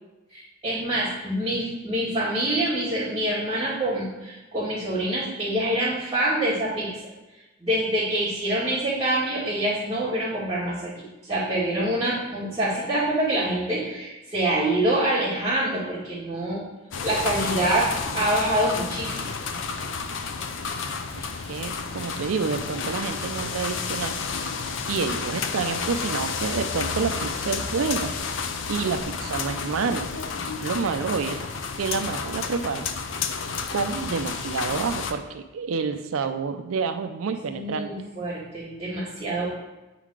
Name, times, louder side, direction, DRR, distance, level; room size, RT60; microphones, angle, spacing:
voice 1, 0.3-7.0 7.6-16.6 17.0-19.3 37.5-39.5, right 1 dB, 20° right, -13 dB, 2.0 m, -26 dB
sound 1, 16.9-35.1, left 5 dB, 70° left, 0.6 m, -31 dB
voice 2, 21.2-24.1 24.9-28.1 28.7-30.1 30.6-31.4 31.8-32.9 33.7-37.9, right 5 dB, 85° right, 8 dB, 0.5 m, -28 dB
9.0 x 3.9 x 4.7 m, 1.1 s
head